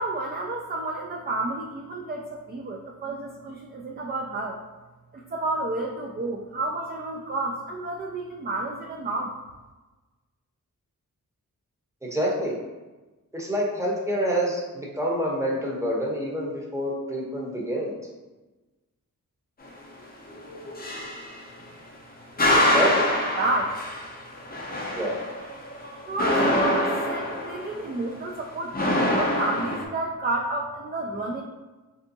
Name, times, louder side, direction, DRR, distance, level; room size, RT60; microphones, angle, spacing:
voice 1, 0.0-4.6 5.1-9.3 22.4-23.7 26.1-31.4, right 2 dB, 30° right, -1 dB, 0.4 m, -31 dB
voice 2, 12.0-12.5 13.3-17.9 22.7-22.9 24.9-25.2, equal, 10° right, -3 dB, 0.8 m, -27 dB
sound 1, 20.3-21.4 22.4-27.9 28.7-29.8, left 1 dB, 25° left, 0.6 m, -25 dB
3.4 x 2.7 x 2.6 m, 1.2 s
wide cardioid pair, 65°, 35 cm